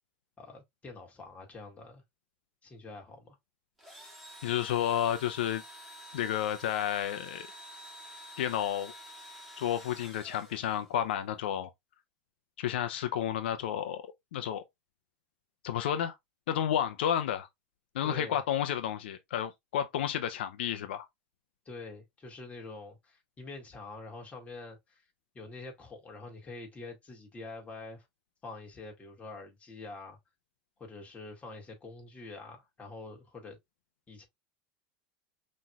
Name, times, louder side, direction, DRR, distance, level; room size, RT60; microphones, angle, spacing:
voice 1, 0.4-2.0 2.6-3.4 18.0-18.4 21.7-25.0 25.3-28.0 28.4-30.2 30.8-33.6 34.1-34.3, left 3 dB, 25° left, 1.9 m, -46 dB
Engine / Drill, 3.8-11.1, equal, ahead, 2.2 m, -49 dB
voice 2, 4.4-5.6 6.1-7.5 8.4-8.9 9.6-11.7 12.6-14.0 14.3-14.6 15.6-16.1 16.5-17.5 17.9-21.1, left 10 dB, 85° left, 0.5 m, -31 dB
5.5 x 3.1 x 2.3 m
supercardioid pair, 100°, 6 cm